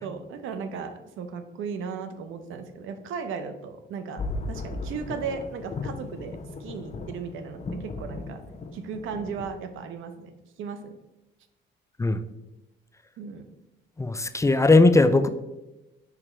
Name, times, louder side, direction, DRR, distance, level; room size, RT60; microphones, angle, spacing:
voice 1, 0.0-4.2 4.5-8.4 8.7-10.3 10.6-10.9 13.2-13.5, right 5 dB, 85° right, 9 dB, 0.7 m, -36 dB
sound 1, 4.2-9.5, left 3 dB, 35° left, 0.8 m, -36 dB
voice 2, 14.0-15.3, left 2 dB, 15° left, 10 dB, 0.4 m, -18 dB
4.9 x 4.9 x 4.4 m, 1.0 s
cardioid pair, 90°, 20 cm